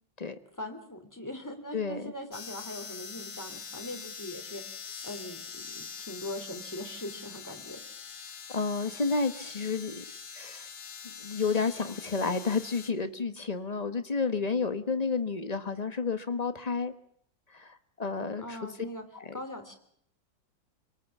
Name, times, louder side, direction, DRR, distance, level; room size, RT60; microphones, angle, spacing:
voice 1, 0.6-7.8 18.4-19.0 19.3-19.7, left 1 dB, 10° left, 4 dB, 3.1 m, -41 dB
voice 2, 1.7-2.1 8.5-10.0 10.3-10.7 11.0-16.9 17.5-18.6 19.1-19.4, left 4 dB, 25° left, 10 dB, 1.1 m, -31 dB
sound 1, 2.3-12.9, left 6 dB, 75° left, 2.5 m, -44 dB
27.0 x 18.5 x 7.2 m, 0.69 s
omnidirectional pair, 2.0 m